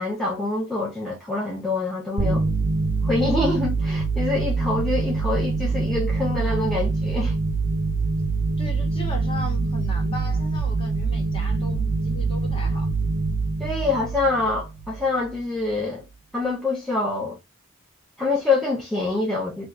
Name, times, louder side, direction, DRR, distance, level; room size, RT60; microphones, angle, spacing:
voice 1, 0.0-2.5 3.0-7.3 13.6-16.0 16.3-17.4 18.2-19.7, left 3 dB, ahead, 0.7 m, -25 dB
sound 1, 2.2-15.3, right 3 dB, 80° right, 0.7 m, -25 dB
voice 2, 8.6-12.9, left 1 dB, 25° left, 1.2 m, -37 dB
2.5 x 2.4 x 3.3 m
head